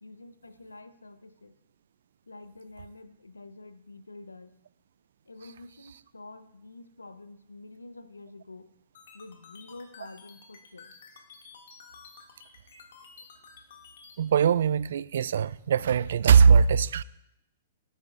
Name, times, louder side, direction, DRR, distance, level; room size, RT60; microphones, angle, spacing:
voice 1, 0.0-1.5 2.3-4.6 5.2-8.7 9.1-10.9, left 2 dB, 90° left, 0.8 m, -48 dB
sound 1, 8.9-14.2, left 5 dB, 65° left, 2.1 m, -51 dB
voice 2, 14.2-17.0, right 6 dB, 65° right, 0.3 m, -21 dB
13.0 x 12.0 x 2.5 m
figure-of-eight pair, 110°, 0 cm